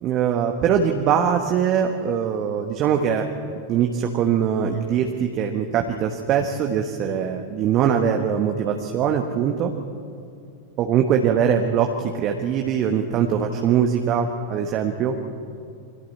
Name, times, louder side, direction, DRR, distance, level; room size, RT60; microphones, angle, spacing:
voice 1, 0.0-3.3 3.7-9.7 10.8-15.2, right 8 dB, 35° right, 3 dB, 1.4 m, -22 dB
29.0 x 23.0 x 4.4 m, 2.4 s
figure-of-eight pair, 90°, 0 cm